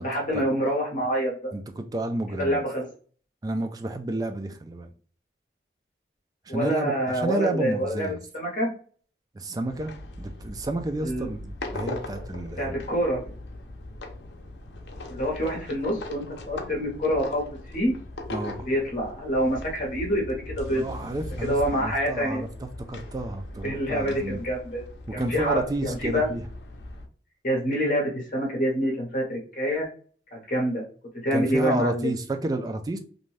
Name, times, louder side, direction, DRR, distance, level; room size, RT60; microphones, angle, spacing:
voice 1, 0.0-1.5 2.3-2.9 6.5-8.7 11.0-11.3 12.6-13.2 15.1-17.5 17.7-17.9 18.6-20.8 21.4-22.4 23.6-24.8 25.1-26.3 27.4-29.9 30.3-30.8 31.2-32.1, equal, 45° left, 0.9 m, -26 dB
voice 2, 1.5-2.6 3.4-4.9 6.5-8.2 9.4-9.9 10.2-12.8 18.3-18.7 20.8-24.4 25.1-26.4 31.3-33.0, right 1 dB, 20° right, 0.3 m, -30 dB
sound 1, 9.7-27.1, left 2 dB, 80° left, 0.5 m, -39 dB
2.6 x 2.2 x 3.2 m
head